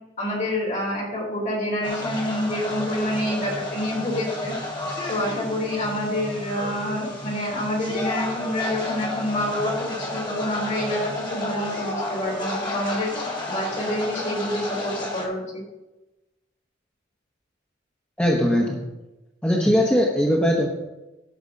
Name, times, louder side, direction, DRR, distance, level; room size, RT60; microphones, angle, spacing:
voice 1, 0.2-4.5 5.1-15.6, left 1 dB, 40° left, -2 dB, 3.5 m, -27 dB
sound 1, 1.8-15.2, left 2 dB, 25° left, 2.0 m, -31 dB
voice 2, 18.2-18.8 19.4-20.7, equal, 5° left, -2 dB, 1.0 m, -20 dB
12.0 x 6.1 x 5.3 m, 1.0 s
head